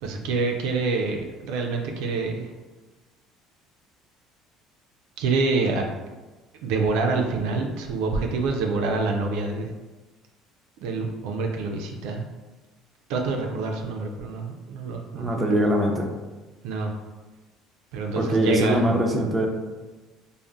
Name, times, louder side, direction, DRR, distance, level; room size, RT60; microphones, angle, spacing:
voice 1, 0.0-2.5 5.2-5.8 6.6-9.7 10.8-12.3 13.1-15.7 16.6-16.9 17.9-18.9, right 3 dB, 80° right, 2 dB, 0.3 m, -26 dB
voice 2, 15.1-16.1 18.2-19.5, right 1 dB, 15° right, 1 dB, 0.5 m, -22 dB
2.5 x 2.0 x 3.4 m, 1.2 s
supercardioid pair, 85°, 0 cm